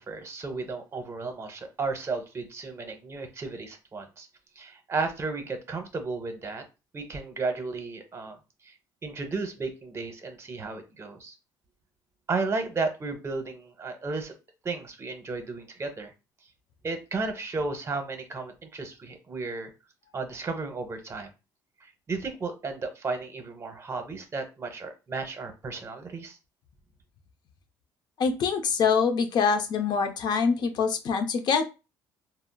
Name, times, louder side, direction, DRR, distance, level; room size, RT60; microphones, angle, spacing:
voice 1, 0.0-4.3 4.6-6.6 6.9-8.4 8.6-8.7 9.0-11.3 12.3-14.3 14.6-16.1 16.8-19.7 20.1-21.3 21.8-26.4, right 3 dB, 30° right, 6 dB, 0.8 m, -33 dB
voice 2, 28.2-31.6, left 5 dB, 55° left, 7 dB, 0.6 m, -24 dB
3.6 x 2.0 x 2.2 m, 0.29 s
supercardioid pair, 85°, 9 cm